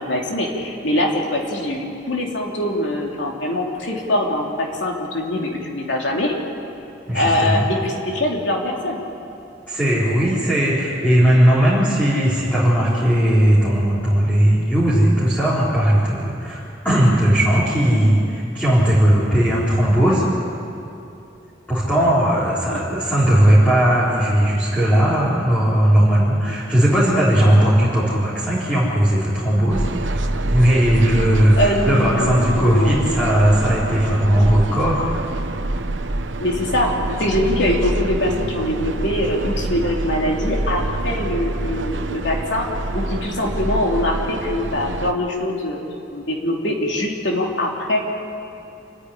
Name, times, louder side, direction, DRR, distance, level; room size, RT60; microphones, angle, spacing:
voice 1, 0.0-6.4 7.1-9.0 21.9-22.1 22.7-22.8 26.5-26.6 31.6-33.2 36.4-36.9 37.2-42.6 42.9-45.8 46.1-48.0, left 1 dB, 75° left, 0 dB, 3.0 m, -23 dB
voice 2, 7.1-7.7 9.7-20.3 21.7-35.1, right 1 dB, 10° left, -9 dB, 4.0 m, -17 dB
sound 1, 29.7-45.1, right 2 dB, 85° right, 0.9 m, -26 dB
28.5 x 10.0 x 9.9 m, 2.8 s
head